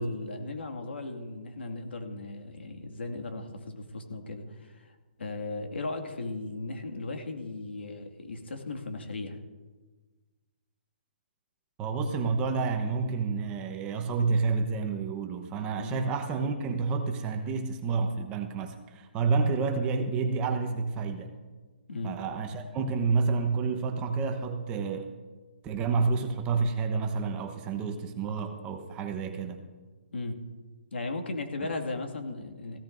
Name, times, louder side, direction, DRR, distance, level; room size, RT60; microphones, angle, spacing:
voice 1, 0.0-9.4 15.8-16.0 21.9-22.2 30.1-30.4 30.9-32.8, left 2 dB, 90° left, 4 dB, 2.1 m, -37 dB
voice 2, 11.8-21.3 22.0-25.1 25.6-29.6, right 4 dB, 15° right, 5 dB, 1.0 m, -29 dB
18.0 x 16.0 x 2.6 m, 1.3 s
hypercardioid pair, 160°, 6 cm